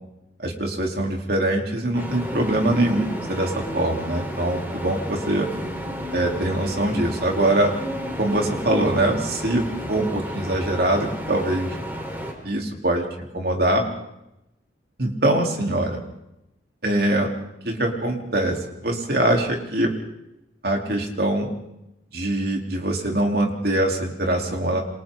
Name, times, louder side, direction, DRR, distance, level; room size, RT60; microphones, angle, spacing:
voice 1, 0.4-5.5 6.1-7.7 8.2-11.7 12.4-13.8 15.0-16.0 16.8-17.3 17.6-19.9 20.6-21.5 22.1-24.8, right 1 dB, 55° right, 1 dB, 3.9 m, -23 dB
sound 1, 1.9-12.3, equal, 10° right, 4.4 m, -32 dB
28.5 x 27.0 x 4.0 m, 0.88 s
head